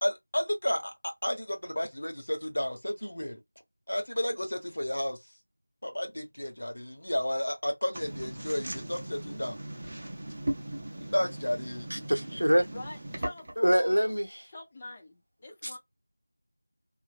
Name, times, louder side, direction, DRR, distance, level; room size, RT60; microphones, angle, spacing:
voice 1, 0.0-3.4 3.9-5.2 5.8-9.6 11.1-11.9, left 1 dB, 65° left, 1.0 m, -32 dB
sound 1, 7.9-13.7, right 1 dB, 25° right, 0.6 m, -38 dB
voice 2, 11.9-12.7 13.6-14.5 15.6-15.7, equal, 80° right, 0.7 m, -25 dB
voice 3, 12.7-14.1 14.5-15.8, left 2 dB, 15° left, 0.5 m, -44 dB
2.9 x 2.5 x 2.4 m
figure-of-eight pair, 175°, 0 cm